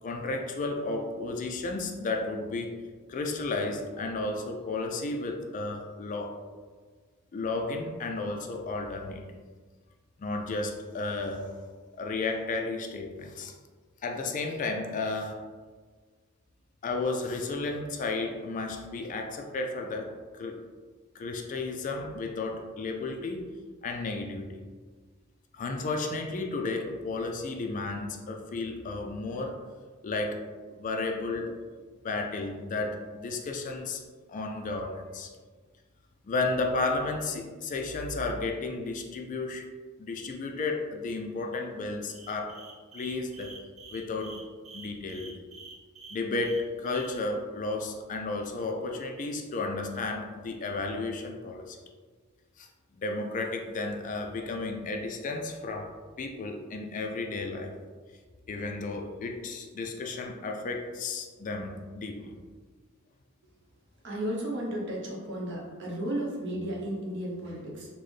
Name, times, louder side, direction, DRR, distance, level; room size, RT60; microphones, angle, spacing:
voice 1, 0.0-2.8 3.1-6.4 7.3-9.3 10.2-11.6 11.9-13.5 14.0-15.4 16.8-20.6 21.1-23.5 23.8-24.6 25.5-29.6 30.0-30.4 30.8-31.5 32.0-34.0 34.3-35.3 36.2-39.7 40.0-42.6 42.9-43.6 43.9-44.4 44.7-45.4 46.1-51.8 52.6-52.7 53.0-57.7 58.5-62.4, left 3 dB, 40° left, 3 dB, 0.3 m, -33 dB
sound 1, 42.1-47.1, right 3 dB, 30° right, 0.6 m, -47 dB
voice 2, 64.0-67.9, right 1 dB, 60° right, -2 dB, 0.8 m, -34 dB
4.1 x 2.1 x 3.2 m, 1.5 s
head